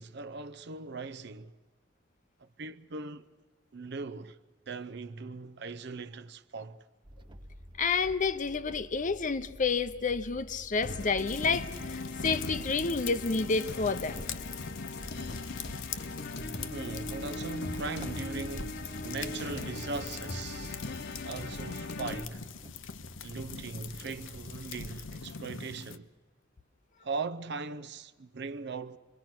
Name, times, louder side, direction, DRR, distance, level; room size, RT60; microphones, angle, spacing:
voice 1, 0.0-1.5 2.4-3.3 3.7-4.4 4.7-6.8 16.7-20.8 21.2-22.4 23.2-26.1 27.0-29.0, right 4 dB, 60° right, 0.7 m, -39 dB
sound 1, 7.0-25.3, equal, 25° right, 0.8 m, -49 dB
voice 2, 7.8-14.2, left 4 dB, 40° left, 0.7 m, -29 dB
sound 2, 10.8-22.2, left 2 dB, 60° left, 1.1 m, -40 dB
sound 3, 11.2-26.0, left 5 dB, 85° left, 0.8 m, -43 dB
26.5 x 22.0 x 6.0 m
head